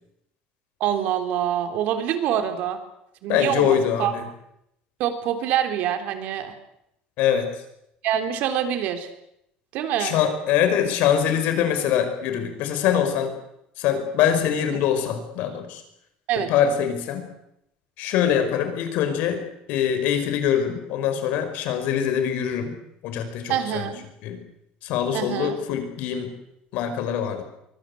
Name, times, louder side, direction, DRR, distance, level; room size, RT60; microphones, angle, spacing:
voice 1, 0.8-2.8 3.2-4.1 5.0-6.6 8.0-9.1 9.7-10.2 14.7-14.8 16.3-16.5 23.5-24.1 25.1-25.6, right 10 dB, 60° right, 7 dB, 3.6 m, -25 dB
voice 2, 3.3-4.2 7.2-7.5 10.0-13.3 13.8-15.8 16.5-17.3 18.0-19.4 19.7-22.7 23.0-23.9 24.2-24.4 24.8-26.3 26.7-27.4, left 9 dB, 70° left, 8 dB, 5.3 m, -23 dB
24.0 x 21.0 x 8.6 m, 0.81 s
cardioid pair, 140°, 3 cm